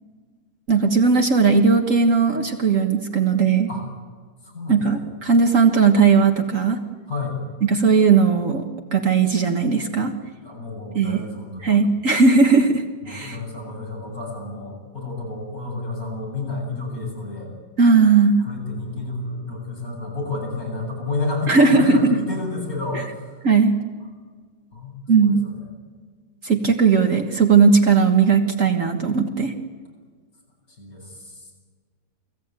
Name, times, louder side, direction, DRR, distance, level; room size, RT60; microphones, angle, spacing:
voice 1, 0.7-3.7 4.7-6.8 7.6-8.6 8.9-10.1 11.0-11.2 11.6-13.4 17.8-18.4 21.5-22.2 23.4-23.8 25.1-25.4 26.4-29.5, right 5 dB, 55° right, 4 dB, 1.8 m, -17 dB
voice 2, 4.4-5.1 7.1-7.4 10.4-11.7 13.0-17.5 18.4-23.3 24.7-25.7 30.8-31.4, left 3 dB, 60° left, 0 dB, 8.6 m, -31 dB
29.0 x 20.0 x 9.0 m, 1.5 s
omnidirectional pair, 1.7 m